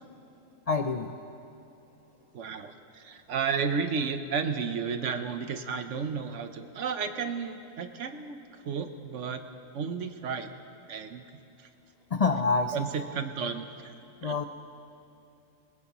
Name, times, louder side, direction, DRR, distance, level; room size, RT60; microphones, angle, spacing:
voice 1, 0.7-1.1 12.1-12.8 14.2-14.4, left 4 dB, 70° left, 6 dB, 0.3 m, -26 dB
voice 2, 2.3-9.4 9.7-10.5 10.9-11.2 11.6-11.7 12.7-13.9 14.2-14.3, right 6 dB, 65° right, 8 dB, 1.1 m, -33 dB
21.0 x 20.5 x 3.0 m, 2.8 s
omnidirectional pair, 1.4 m